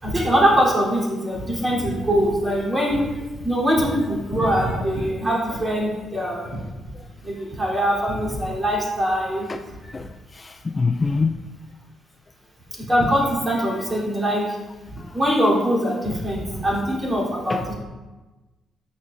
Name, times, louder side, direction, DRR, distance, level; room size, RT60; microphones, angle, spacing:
voice 1, 0.0-6.6 7.2-9.7 12.7-14.6 14.9-17.7, equal, 20° right, 3.5 m, -22 dB
voice 2, 9.9-11.5 15.0-15.2 17.5-17.7, left 4 dB, 25° left, 0.3 m, -25 dB
17.5 x 6.1 x 2.6 m
cardioid pair, 130°, 0 cm